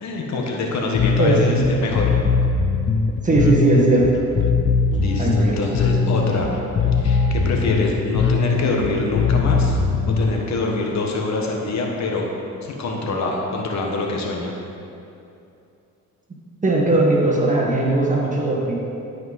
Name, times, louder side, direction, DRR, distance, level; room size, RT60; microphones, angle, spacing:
voice 1, 0.0-2.1 4.9-6.5 7.0-9.8 10.2-12.3 12.6-14.5, left 2 dB, 65° left, 0 dB, 1.4 m, -25 dB
Bass guitar, 0.9-10.4, left 5 dB, 40° left, 0.5 m, -20 dB
voice 2, 1.2-1.6 3.2-4.1 5.2-5.6 16.6-18.7, right 2 dB, 25° right, -3 dB, 1.7 m, -18 dB
Bowed string instrument, 5.0-8.2, equal, 85° left, 2.2 m, -36 dB
12.0 x 5.2 x 4.2 m, 2.7 s
cardioid pair, 90°, 30 cm